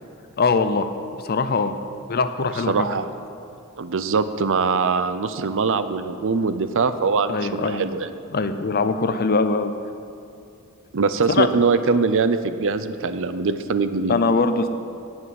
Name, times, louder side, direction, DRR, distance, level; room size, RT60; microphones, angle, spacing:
voice 1, 0.4-0.9 1.2-1.7 2.1-2.7 7.3-7.9 8.3-9.7 11.3-11.5 14.1-14.7, left 4 dB, 45° left, 10 dB, 0.7 m, -21 dB
voice 2, 2.7-3.1 3.8-8.1 10.9-14.2, right 4 dB, 60° right, 11 dB, 0.6 m, -22 dB
17.0 x 6.2 x 7.6 m, 2.6 s
head